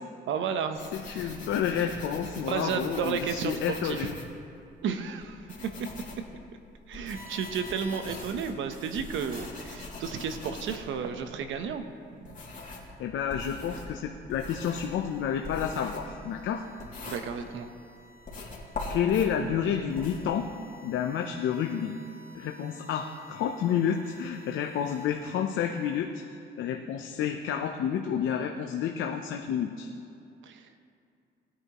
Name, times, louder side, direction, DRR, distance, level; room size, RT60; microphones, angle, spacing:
voice 1, 0.3-1.3 2.4-4.1 4.8-5.9 6.9-11.8 12.2-12.4 17.1-17.7 30.4-30.6, right 6 dB, 80° right, 8 dB, 0.9 m, -33 dB
sound 1, 0.7-4.7 5.2-12.9 13.3-17.8 18.2-20.2, left 2 dB, 40° left, 2.7 m, -42 dB
voice 2, 0.9-4.1 13.0-16.6 18.9-20.5 20.8-22.0 22.3-26.2 26.6-29.9, left 8 dB, 80° left, 4 dB, 0.7 m, -30 dB
Massive as a sound, 7.1-9.5 14.7-26.0, right 1 dB, 45° right, 2.1 m, -52 dB
19.0 x 9.6 x 3.0 m, 2.5 s
cardioid pair, 90°, 20 cm